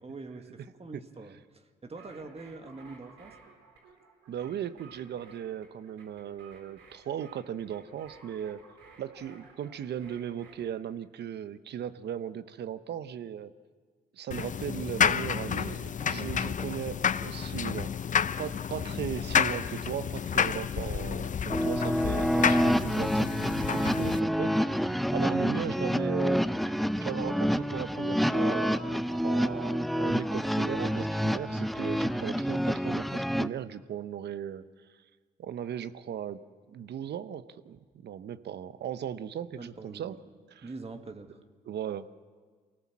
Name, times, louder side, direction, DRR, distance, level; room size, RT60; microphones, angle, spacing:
voice 1, 0.0-3.4 18.7-18.9 32.2-32.5 39.6-40.2 40.6-41.4, right 3 dB, 30° right, 6 dB, 2.0 m, -44 dB
sound 1, 1.9-10.7, right 4 dB, 80° right, 3.9 m, -55 dB
voice 2, 4.3-8.6 9.0-13.5 14.1-17.9 18.4-23.4 23.7-26.5 26.8-34.6 35.4-36.4 36.7-40.2 40.5-40.7 41.7-42.1, right 9 dB, 60° right, 13 dB, 1.0 m, -37 dB
sound 2, 14.3-24.2, left 7 dB, 40° left, 0.7 m, -30 dB
sound 3, 21.5-33.5, equal, ahead, 0.7 m, -28 dB
24.0 x 17.5 x 7.4 m, 1.5 s
supercardioid pair, 55°, 19 cm